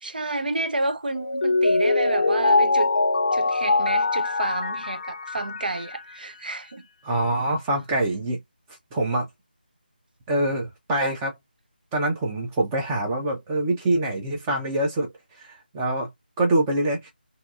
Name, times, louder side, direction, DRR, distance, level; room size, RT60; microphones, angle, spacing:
voice 1, 0.0-2.9 3.3-6.8, right 2 dB, 60° right, 0.7 m, -29 dB
Mallet percussion, 1.2-6.1, left 3 dB, 55° left, 0.5 m, -23 dB
voice 2, 7.0-8.4 8.9-9.3 10.3-11.4 11.9-15.1 15.4-16.1 16.4-17.1, right 1 dB, 10° right, 0.6 m, -25 dB
2.8 x 2.7 x 2.4 m
figure-of-eight pair, 165°, 5 cm